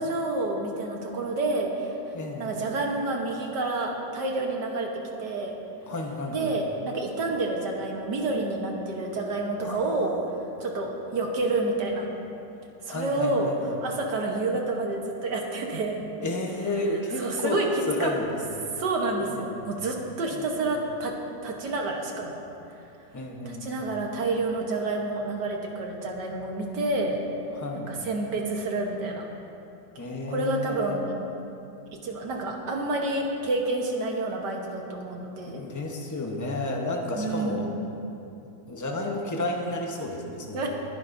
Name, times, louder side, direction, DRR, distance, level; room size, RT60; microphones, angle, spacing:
voice 1, 0.0-4.9 5.2-5.5 6.3-10.1 10.6-12.1 12.8-16.0 17.2-17.7 18.0-18.1 18.8-21.1 21.4-22.4 23.4-27.2 27.7-29.3 30.3-31.1 32.0-35.6 37.1-37.7 40.5-40.7, right 2 dB, 70° right, 1 dB, 1.7 m, -29 dB
voice 2, 2.1-2.5 5.9-6.5 9.6-10.1 12.9-13.8 16.2-17.6 17.9-18.7 19.5-19.8 20.3-20.7 23.1-23.8 27.5-27.9 30.0-31.0 35.4-37.7 38.7-40.7, left 2 dB, 15° left, 0 dB, 0.7 m, -32 dB
21.0 x 10.5 x 2.7 m, 2.8 s
omnidirectional pair, 2.0 m